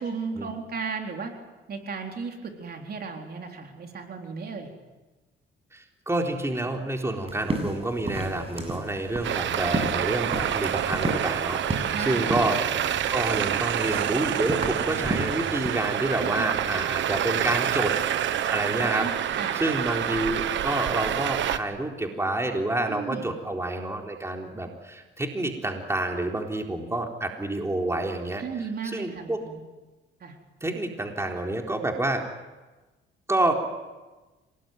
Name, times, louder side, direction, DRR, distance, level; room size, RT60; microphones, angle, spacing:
voice 1, 0.0-1.3 1.7-4.7 11.9-12.3 16.2-16.5 18.8-19.6 22.9-23.3 28.4-29.6 30.2-30.4, right 5 dB, 50° right, 2 dB, 4.0 m, -35 dB
voice 2, 5.7-12.8 13.1-18.0 18.5-28.4 28.9-29.4 30.6-32.2 33.3-33.5, right 2 dB, 15° right, 2 dB, 4.0 m, -28 dB
sound 1, 7.3-15.7, right 2 dB, 30° right, 7.7 m, -33 dB
Traffic noise roadway noise, 9.2-21.6, right 10 dB, 70° right, 1.3 m, -27 dB
27.0 x 19.5 x 9.3 m, 1.2 s
cardioid pair, 90°, 20 cm